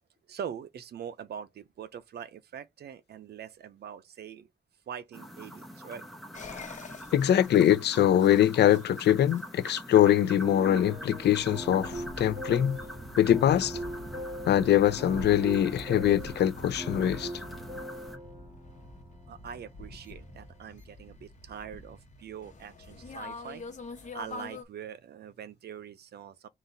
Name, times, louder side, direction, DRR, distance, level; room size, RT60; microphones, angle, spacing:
voice 1, 0.3-4.5 4.9-6.0 19.3-23.6 24.1-26.5, right 8 dB, 75° right, 0.6 m, -43 dB
sound 1, 5.1-18.2, equal, ahead, 1.3 m, -45 dB
sound 2, 6.3-24.6, left 2 dB, 45° left, 1.0 m, -46 dB
voice 2, 7.1-12.8 13.2-13.8 14.5-17.3, left 11 dB, 85° left, 0.5 m, -23 dB
sound 3, 10.4-20.6, right 1 dB, 15° right, 1.6 m, -41 dB
3.9 x 2.5 x 4.0 m
wide cardioid pair, 150°, 17 cm